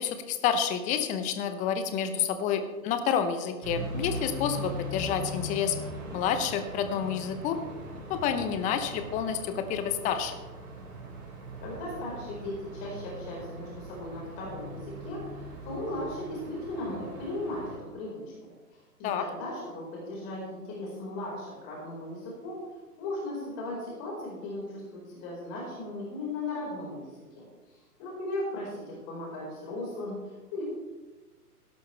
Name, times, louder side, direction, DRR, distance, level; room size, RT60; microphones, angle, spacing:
voice 1, 0.0-5.8 6.1-7.6 8.1-10.4 19.0-19.3, left 8 dB, 15° left, 9 dB, 0.8 m, -29 dB
sound 1, 3.6-17.8, equal, 55° right, 5.1 m, -40 dB
voice 2, 11.6-22.6 23.0-27.4 27.7-30.6, left 1 dB, 30° left, -4 dB, 4.9 m, -37 dB
16.5 x 12.5 x 3.4 m, 1.2 s
figure-of-eight pair, 120°, 47 cm